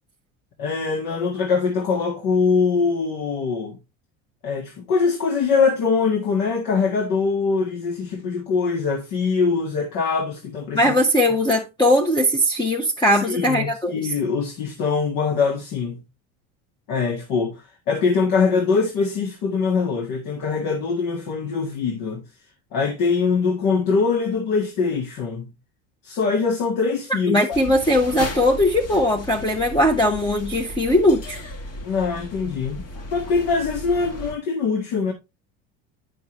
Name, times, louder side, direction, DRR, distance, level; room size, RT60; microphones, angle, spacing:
voice 1, 0.6-3.8 4.4-10.9 13.1-16.0 16.9-22.2 22.7-25.5 26.0-27.4 31.8-32.8 33.1-35.1, left 5 dB, 70° left, 2.0 m, -23 dB
voice 2, 10.7-14.1 27.3-31.4, left 1 dB, 15° left, 1.0 m, -19 dB
sound 1, 27.5-34.4, left 1 dB, 40° left, 1.7 m, -35 dB
8.4 x 6.3 x 3.1 m
supercardioid pair, 105°, 35 cm